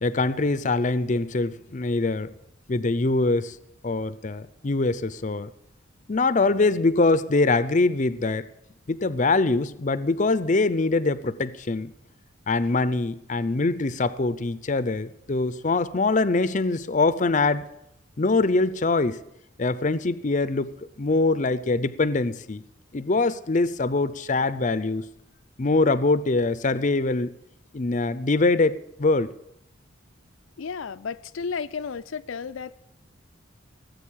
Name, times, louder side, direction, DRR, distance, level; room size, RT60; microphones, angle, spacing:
voice 1, 0.0-2.3 2.7-3.6 3.8-5.5 6.1-8.5 8.9-11.9 12.5-17.7 18.2-19.2 19.6-20.7 21.0-22.6 22.9-25.0 25.6-27.3 27.7-29.3, left 3 dB, 40° left, 0.6 m, -23 dB
voice 2, 30.6-32.8, left 5 dB, 85° left, 0.5 m, -33 dB
18.0 x 8.1 x 8.6 m
head